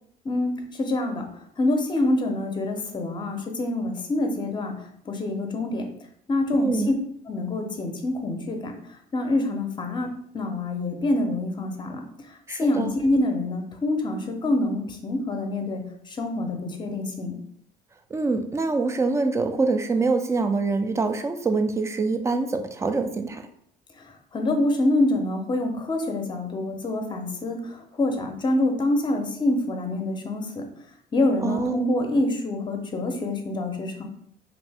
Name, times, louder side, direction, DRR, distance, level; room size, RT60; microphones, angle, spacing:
voice 1, 0.2-1.2 1.6-4.7 5.1-5.8 6.3-6.9 7.3-8.7 9.1-10.1 10.3-12.0 12.6-15.8 16.1-17.4 24.3-30.6 31.1-34.0, left 2 dB, 25° left, 4 dB, 0.6 m, -26 dB
voice 2, 6.5-6.9 12.5-13.0 18.1-23.4 31.4-31.9, right 3 dB, 15° right, 7 dB, 0.3 m, -25 dB
2.7 x 2.5 x 3.3 m, 0.69 s
cardioid pair, 110°, 17 cm